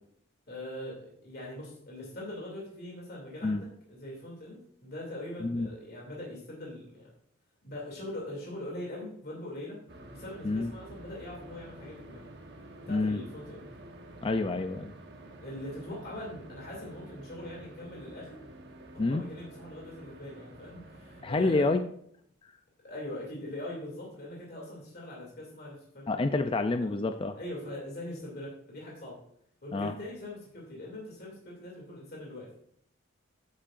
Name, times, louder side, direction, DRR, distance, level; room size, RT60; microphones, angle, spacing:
voice 1, 0.5-7.1 7.6-9.8 10.1-12.2 12.9-13.7 15.2-18.4 18.9-21.7 22.8-26.1 26.8-26.9 27.4-29.2 29.6-32.5, left 1 dB, 50° left, -3 dB, 2.6 m, -42 dB
sound 1, 9.9-21.6, right 1 dB, 55° right, 1.1 m, -49 dB
voice 2, 12.9-13.2 14.2-14.9 19.0-19.2 21.2-21.8 26.1-27.4 29.7-29.9, left 3 dB, 25° left, 8 dB, 0.4 m, -28 dB
10.5 x 8.3 x 2.5 m, 0.67 s
head